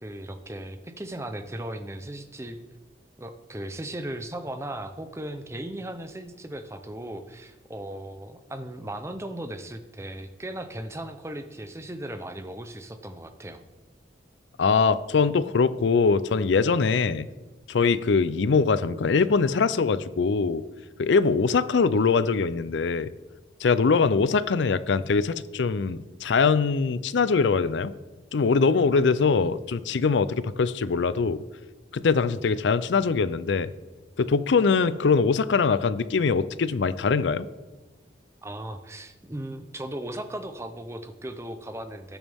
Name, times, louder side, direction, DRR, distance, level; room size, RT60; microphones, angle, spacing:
voice 1, 0.0-2.6 3.2-13.6 38.4-42.2, right 1 dB, 15° right, 9 dB, 0.6 m, -37 dB
voice 2, 14.6-17.3 17.7-20.6 21.0-23.1 23.6-27.9 28.3-31.4 31.9-33.7 34.2-37.5, left 5 dB, 70° left, 15 dB, 0.5 m, -22 dB
17.5 x 7.2 x 3.5 m, 1.2 s
head